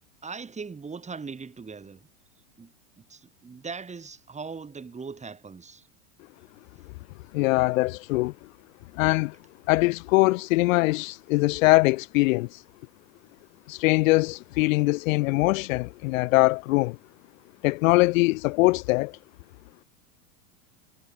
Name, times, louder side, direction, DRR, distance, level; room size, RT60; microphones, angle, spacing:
voice 1, 0.2-2.0 2.6-5.9, right 5 dB, 15° right, 5.1 m, -40 dB
voice 2, 7.3-8.3 8.9-9.4 9.7-12.6 13.7-17.0 17.6-19.2, left 22 dB, 70° left, 0.6 m, -22 dB
supercardioid pair, 115°, 42 cm